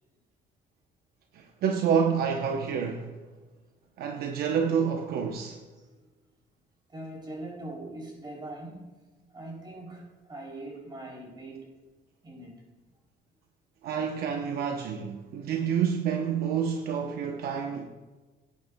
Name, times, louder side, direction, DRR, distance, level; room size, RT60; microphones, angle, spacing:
voice 1, 1.3-3.1 4.0-5.6 13.8-17.9, right 7 dB, 65° right, 0.8 m, -28 dB
voice 2, 6.9-9.0 9.3-11.7 12.2-12.7, right 1 dB, 25° right, 3.4 m, -41 dB
16.5 x 9.6 x 2.2 m
cardioid pair, 110°, 17 cm